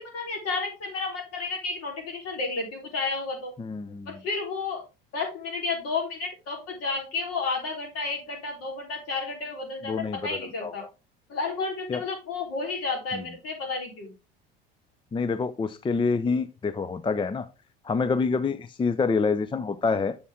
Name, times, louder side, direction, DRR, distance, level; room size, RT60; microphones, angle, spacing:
voice 1, 0.0-3.5 4.1-4.8 5.1-10.8 11.3-14.1, left 4 dB, 55° left, 1 dB, 3.7 m, -31 dB
voice 2, 3.6-4.1 9.8-10.7 11.9-12.0 13.1-13.2 15.1-17.5 17.8-20.2, left 4 dB, 15° left, 11 dB, 0.6 m, -27 dB
7.2 x 7.0 x 3.5 m, 0.29 s
hypercardioid pair, 70°, 29 cm